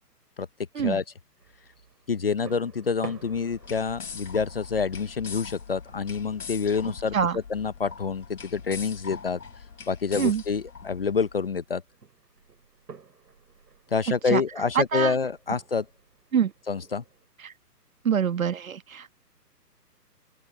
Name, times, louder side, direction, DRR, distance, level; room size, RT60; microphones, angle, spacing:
sound 1, 1.4-17.3, right 5 dB, 85° right, 6.7 m, -51 dB
voice 1, 2.1-7.1 7.5-9.4 9.9-11.8 13.9-15.8 16.7-17.0, left 5 dB, 35° left, 1.0 m, -27 dB
sound 2, 3.2-11.3, left 6 dB, 65° left, 4.4 m, -42 dB
voice 2, 14.7-15.2 16.3-16.5 17.4-17.5 18.0-19.1, right 7 dB, 55° right, 1.4 m, -25 dB
open air
hypercardioid pair, 175°, 48 cm